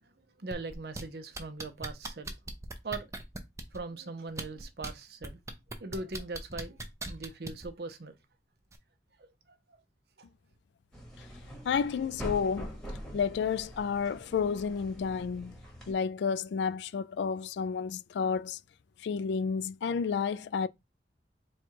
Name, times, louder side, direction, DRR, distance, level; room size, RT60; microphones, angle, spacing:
voice 1, 0.4-2.3 2.8-3.1 3.7-5.4 5.8-6.8 7.1-8.1 9.2-9.3 10.2-10.3, right 3 dB, 60° right, 0.7 m, -40 dB
sound 1, 0.5-1.0 1.3-3.8 4.3-4.9 5.2-7.7 8.7-8.8, right 2 dB, 15° right, 0.5 m, -39 dB
sound 2, 10.9-15.9, equal, 5° left, 1.2 m, -44 dB
voice 2, 11.6-12.7 13.1-15.6 15.9-18.6 19.0-20.7, left 6 dB, 75° left, 0.3 m, -31 dB
4.2 x 2.3 x 4.5 m
head